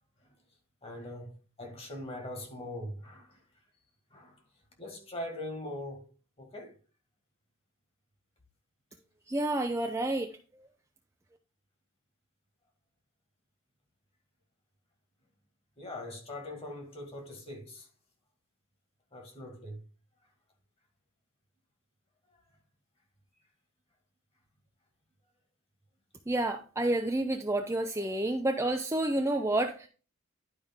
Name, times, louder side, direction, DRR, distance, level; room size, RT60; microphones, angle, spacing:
voice 1, 0.8-3.4 4.1-4.4 4.8-6.1 6.4-6.7 15.8-17.9 19.1-19.8, left 1 dB, 25° left, 2.0 m, -41 dB
voice 2, 9.3-10.7 26.3-29.9, right 1 dB, 15° right, 0.5 m, -30 dB
11.5 x 4.9 x 3.6 m
head